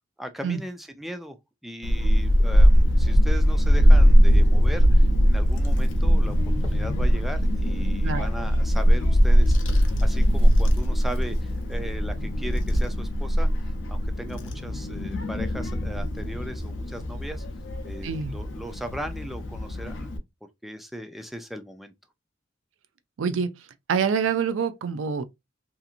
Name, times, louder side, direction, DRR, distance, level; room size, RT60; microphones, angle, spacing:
voice 1, 0.2-1.4 1.6-6.4 6.6-17.4 17.8-20.1 20.6-21.9, equal, ahead, 0.3 m, -38 dB
Child speech kid speaking / Wind, 1.8-20.2, equal, 75° left, 0.6 m, -21 dB
sound 1, 6.4-12.8, equal, 30° left, 1.0 m, -41 dB
voice 2, 23.2-23.5 23.9-25.2, right 6 dB, 85° right, 0.4 m, -26 dB
2.8 x 2.5 x 2.4 m
head